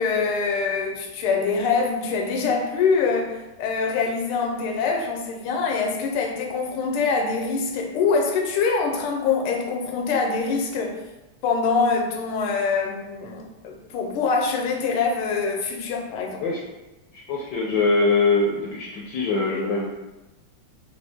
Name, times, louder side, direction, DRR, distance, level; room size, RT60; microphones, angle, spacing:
voice 1, 0.0-11.0 11.4-16.4, left 4 dB, 90° left, 1 dB, 1.6 m, -24 dB
voice 2, 17.3-19.9, left 3 dB, 70° left, -2 dB, 1.2 m, -22 dB
4.3 x 3.3 x 3.5 m, 1.0 s
omnidirectional pair, 2.3 m